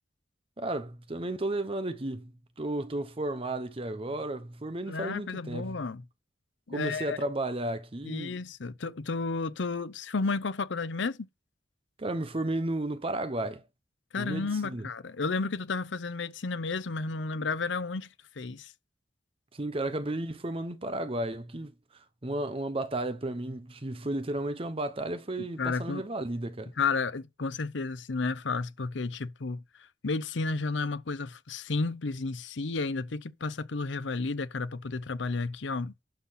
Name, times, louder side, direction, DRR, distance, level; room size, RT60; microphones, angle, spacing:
voice 1, 0.6-2.3 2.6-5.8 6.7-8.4 12.0-13.6 14.2-14.9 19.5-21.7 22.2-26.7, right 1 dB, 30° right, 0.8 m, -33 dB
voice 2, 4.9-6.0 6.7-7.2 8.0-11.3 14.1-18.1 18.4-18.7 25.4-26.0 26.8-29.6 30.0-35.9, left 4 dB, 80° left, 0.7 m, -32 dB
11.5 x 4.1 x 5.6 m
head